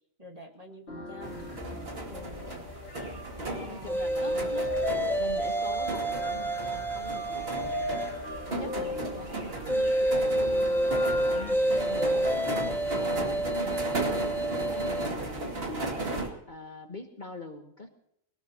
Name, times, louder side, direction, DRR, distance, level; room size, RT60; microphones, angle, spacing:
voice 1, 0.2-2.7 3.4-4.7, equal, 30° right, 0 dB, 2.2 m, -46 dB
sound 1, 0.9-11.5, left 2 dB, 55° left, 2.3 m, -39 dB
sound 2, 1.2-16.3, right 2 dB, 45° right, 2.6 m, -36 dB
voice 2, 3.5-8.0 8.5-14.1 14.5-16.0 16.5-17.9, left 2 dB, 35° left, 4 dB, 1.4 m, -43 dB
sound 3, 3.9-8.3 9.7-15.1, right 1 dB, ahead, 0.8 m, -29 dB
22.0 x 19.0 x 2.9 m, 0.78 s
omnidirectional pair, 1.4 m